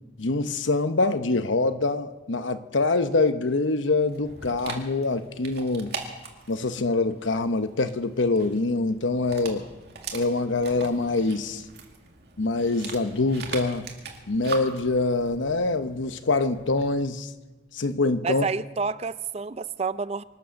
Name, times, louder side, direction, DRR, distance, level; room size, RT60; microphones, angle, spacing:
voice 1, 0.2-5.9 6.5-9.6 10.1-11.6 12.4-13.9 14.3-17.3 17.7-18.5, left 3 dB, 80° left, 0.9 m, -25 dB
Dog, 4.1-17.0, right 4 dB, 60° right, 2.2 m, -41 dB
voice 2, 18.2-20.2, right 5 dB, 35° right, 0.4 m, -29 dB
25.5 x 8.5 x 6.4 m
head